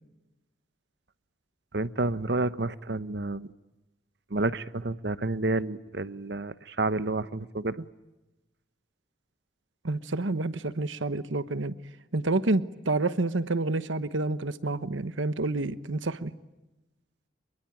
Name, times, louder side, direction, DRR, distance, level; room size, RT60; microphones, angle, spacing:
voice 1, 1.7-3.5 4.3-7.8, right 2 dB, 55° right, 0.9 m, -30 dB
voice 2, 9.8-11.7 12.1-16.3, right 2 dB, 80° right, 1.1 m, -28 dB
27.0 x 23.0 x 8.9 m
head